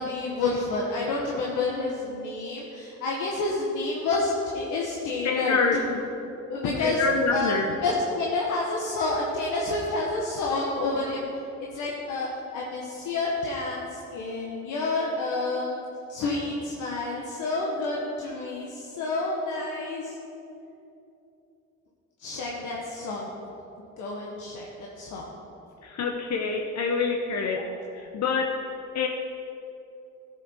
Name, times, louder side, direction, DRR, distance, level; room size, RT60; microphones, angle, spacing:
voice 1, 0.0-6.0 6.5-7.0 7.3-11.3 11.6-15.8 16.1-20.1 22.2-23.3 24.0-24.6 25.0-25.3 27.5-27.6, left 3 dB, 85° left, -3 dB, 1.3 m, -29 dB
voice 2, 5.2-5.8 6.8-7.7 25.8-28.7 28.9-29.1, left 4 dB, 60° left, 2 dB, 0.9 m, -26 dB
14.0 x 7.1 x 4.5 m, 2.8 s
cardioid pair, 90°, 30 cm